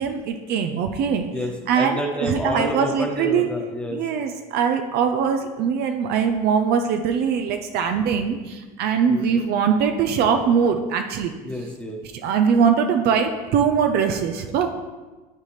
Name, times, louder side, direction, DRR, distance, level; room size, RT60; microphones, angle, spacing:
voice 1, 0.0-1.3 1.7-3.5 3.9-11.3 12.2-14.7, right 6 dB, 60° right, 6 dB, 0.7 m, -22 dB
voice 2, 1.3-4.0 9.1-9.2 11.4-12.0, equal, 5° left, 1 dB, 1.3 m, -29 dB
11.5 x 4.1 x 3.3 m, 1.2 s
supercardioid pair, 110°, 19 cm